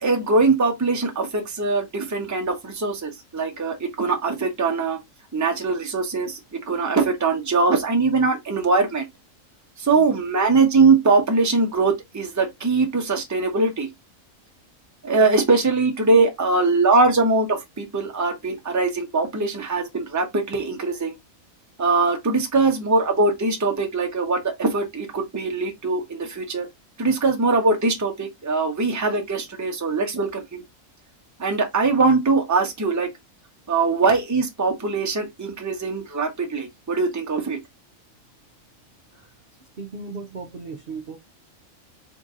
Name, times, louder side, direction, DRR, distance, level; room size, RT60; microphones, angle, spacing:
voice 1, 0.0-5.0 5.3-6.4 6.7-9.0 9.8-13.9 15.0-21.1 21.8-26.7 27.0-30.6 31.4-33.1 33.7-37.6, right 3 dB, 15° right, 0.7 m, -21 dB
voice 2, 39.8-41.2, right 4 dB, 55° right, 0.7 m, -36 dB
3.8 x 2.6 x 3.6 m
omnidirectional pair, 1.4 m